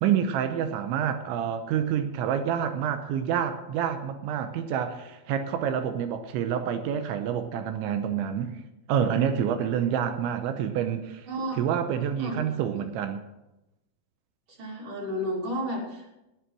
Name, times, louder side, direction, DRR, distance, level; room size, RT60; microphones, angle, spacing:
voice 1, 0.0-8.5 8.9-11.3 11.6-13.2, right 8 dB, 80° right, 9 dB, 2.9 m, -28 dB
voice 2, 11.3-11.6 12.2-12.6 14.5-16.2, equal, 45° right, -2 dB, 4.0 m, -33 dB
12.5 x 9.8 x 7.5 m, 0.94 s
omnidirectional pair, 5.9 m